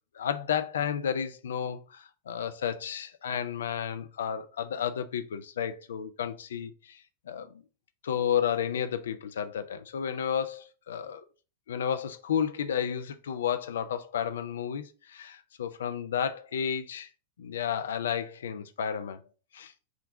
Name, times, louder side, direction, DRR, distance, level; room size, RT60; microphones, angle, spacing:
voice 1, 0.1-7.0 7.3-7.6 8.0-11.2 11.7-17.1 17.4-19.2 19.5-19.7, left 8 dB, 65° left, 0.4 m, -32 dB
3.7 x 2.2 x 3.8 m
figure-of-eight pair, 90°, 0 cm